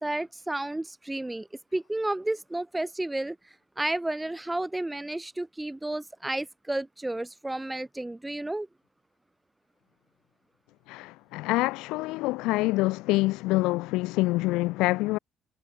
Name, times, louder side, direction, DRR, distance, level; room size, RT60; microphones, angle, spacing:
voice 1, 0.0-8.7, right 1 dB, 10° right, 1.3 m, -32 dB
voice 2, 10.9-15.2, left 21 dB, 90° left, 0.5 m, -26 dB
supercardioid pair, 80°, 0 cm